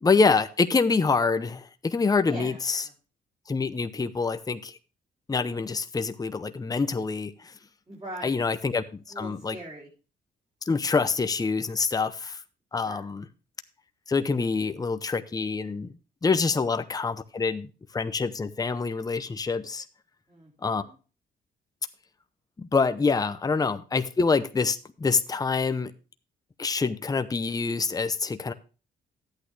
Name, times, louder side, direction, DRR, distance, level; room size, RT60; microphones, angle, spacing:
voice 1, 0.0-2.8 3.5-4.8 5.3-7.5 8.2-9.6 10.7-12.4 12.7-13.3 14.1-15.9 16.2-19.8 20.6-20.8 22.6-25.9 26.6-28.5, left 4 dB, 20° left, 0.7 m, -26 dB
voice 2, 2.3-2.9 7.9-8.4 9.1-9.9 12.8-13.1 20.3-20.9, right 1 dB, 25° right, 3.7 m, -42 dB
11.5 x 8.5 x 3.3 m
cardioid pair, 90°, 20 cm